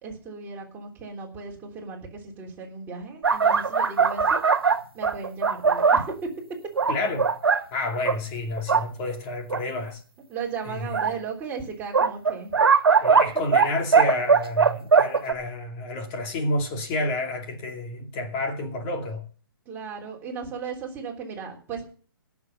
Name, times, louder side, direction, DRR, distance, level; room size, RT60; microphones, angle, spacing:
voice 1, 0.0-4.4 4.9-6.3 10.3-12.6 13.4-13.5 19.7-21.8, right 5 dB, 15° right, 3.4 m, -36 dB
sound 1, 3.2-6.1 6.8-7.6 8.1-8.2 8.6-8.8 9.5-9.6 10.9-11.1 11.9-13.7 13.9-15.3, right 5 dB, 85° right, 1.7 m, -20 dB
voice 2, 6.9-7.3 7.7-10.0 10.7-10.9 13.0-19.3, left 2 dB, 30° left, 2.5 m, -30 dB
17.0 x 7.0 x 5.9 m
hypercardioid pair, 150°, 12 cm